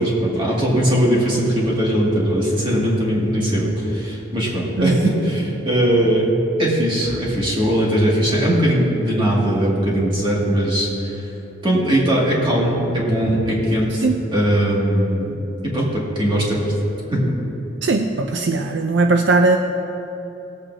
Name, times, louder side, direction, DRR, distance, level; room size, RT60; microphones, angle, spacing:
voice 1, 0.0-6.3 6.6-11.3 11.6-14.1 14.3-15.4 15.6-16.7 17.1-17.4, right 1 dB, 25° right, -5 dB, 2.2 m, -19 dB
voice 2, 17.8-19.6, right 3 dB, 65° right, 4 dB, 0.5 m, -18 dB
18.5 x 8.5 x 2.8 m, 3.0 s
head